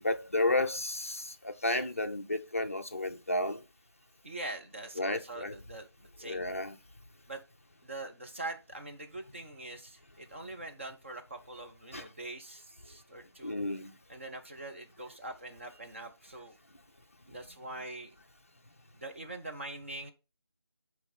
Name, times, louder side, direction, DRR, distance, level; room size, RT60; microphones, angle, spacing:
voice 1, 0.0-3.6 5.0-5.6 6.2-6.8 11.9-12.1 13.4-14.0, left 2 dB, 35° left, 0.5 m, -32 dB
voice 2, 4.2-6.5 7.3-7.4 7.8-13.6 14.1-16.6 17.3-18.1 18.9-20.1, right 2 dB, 30° right, 0.8 m, -43 dB
8.3 x 3.2 x 5.3 m
figure-of-eight pair, 165°, 14 cm